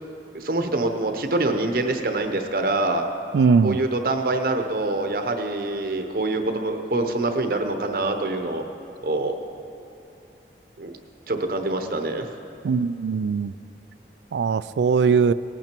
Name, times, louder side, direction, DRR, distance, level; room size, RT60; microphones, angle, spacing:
voice 1, 0.3-3.1 3.6-8.6 9.0-9.3 10.8-11.0 11.3-12.3, right 2 dB, 55° right, 5 dB, 0.8 m, -25 dB
voice 2, 3.3-3.8 12.6-13.5 14.3-15.3, right 5 dB, 80° right, 17 dB, 0.3 m, -20 dB
19.0 x 8.8 x 4.5 m, 2.7 s
head